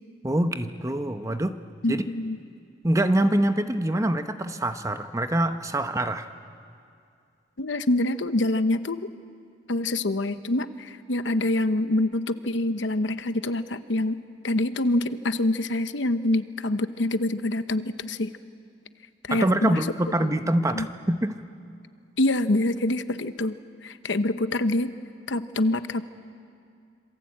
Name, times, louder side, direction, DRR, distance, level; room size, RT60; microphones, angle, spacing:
voice 1, 0.2-1.6 1.9-2.0 2.8-6.3 19.3-21.3, right 1 dB, 15° right, 8 dB, 0.9 m, -25 dB
voice 2, 1.8-2.4 7.6-9.1 9.7-14.2 14.4-18.3 19.2-19.8 20.1-20.2 20.7-20.9 22.2-23.6 23.8-24.9 25.3-26.0, left 1 dB, 70° left, 11 dB, 0.9 m, -25 dB
27.0 x 22.5 x 8.7 m, 2.4 s
head